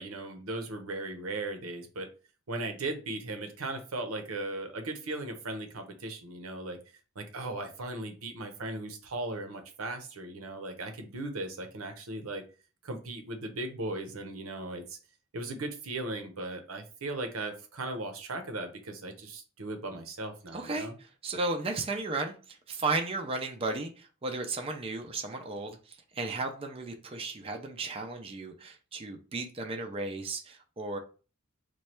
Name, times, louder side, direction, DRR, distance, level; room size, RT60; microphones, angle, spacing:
voice 1, 0.0-2.1 2.5-6.8 7.2-12.4 12.8-15.0 15.3-20.9, right 2 dB, 85° right, 6 dB, 0.8 m, -37 dB
voice 2, 20.5-31.0, right 3 dB, 25° right, 3 dB, 0.4 m, -34 dB
3.1 x 2.2 x 4.3 m, 0.35 s
head